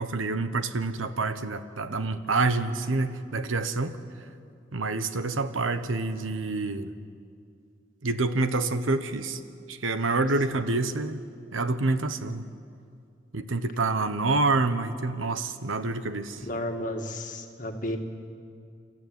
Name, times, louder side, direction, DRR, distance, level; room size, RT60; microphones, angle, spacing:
voice 1, 0.0-4.0 4.7-6.9 8.0-9.4 9.7-11.2 11.5-12.4 13.3-16.4, right 3 dB, 85° right, 10 dB, 1.2 m, -27 dB
voice 2, 16.4-18.0, left 1 dB, 40° left, 3 dB, 1.9 m, -32 dB
30.0 x 13.5 x 9.5 m, 2.4 s
head